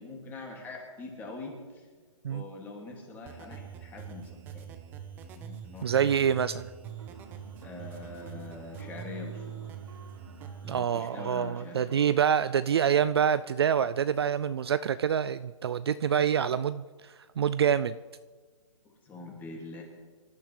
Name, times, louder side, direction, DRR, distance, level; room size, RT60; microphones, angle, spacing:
voice 1, 0.0-1.9 2.3-4.7 5.2-6.1 7.6-9.6 10.6-12.0 18.8-19.8, left 3 dB, 10° left, 0 dB, 2.4 m, -43 dB
sound 1, 3.2-10.8, right 8 dB, 10° right, 0.7 m, -44 dB
voice 2, 5.8-6.7 10.7-18.0, right 8 dB, 50° right, 14 dB, 0.4 m, -26 dB
sound 2, 6.8-13.9, right 5 dB, 70° right, 2.9 m, -53 dB
26.5 x 13.0 x 3.4 m, 1.5 s
hypercardioid pair, 160°, 17 cm